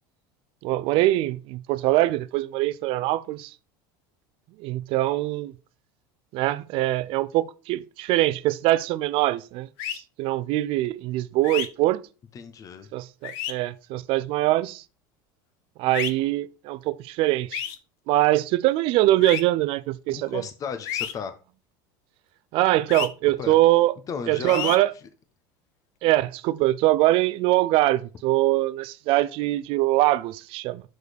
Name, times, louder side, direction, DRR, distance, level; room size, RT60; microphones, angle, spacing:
voice 1, 0.6-3.5 4.6-5.5 6.3-12.0 12.9-14.8 15.8-17.6 18.1-20.4 22.5-24.0 24.3-24.9 26.0-30.8, right 16 dB, 55° right, 0.5 m, -23 dB
sound 1, 9.8-10.0 11.4-11.7 13.2-13.5 15.9-16.1 17.5-17.8 19.2-19.4 20.9-21.1 22.9-23.1 24.5-24.8, left 11 dB, 70° left, 0.9 m, -30 dB
voice 2, 12.3-12.9 20.1-21.3 23.4-23.5 24.1-24.7, left 6 dB, 30° left, 1.0 m, -34 dB
6.3 x 4.7 x 5.1 m
supercardioid pair, 125°, 11 cm